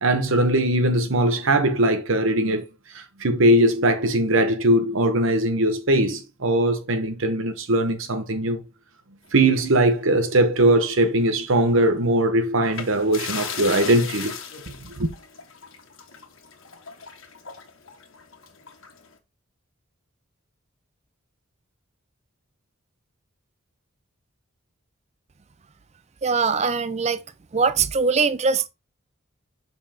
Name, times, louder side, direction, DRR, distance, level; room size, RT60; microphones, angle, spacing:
voice 1, 0.0-2.7 2.9-8.6 9.3-14.3 14.8-15.1, right 1 dB, 70° right, 0.9 m, -20 dB
sound 1, 9.3-10.9 11.2-11.4 12.6-19.1, left 6 dB, 65° left, 1.4 m, -37 dB
voice 2, 26.2-27.2 27.5-28.7, right 5 dB, 30° right, 0.4 m, -21 dB
6.9 x 5.4 x 2.8 m
head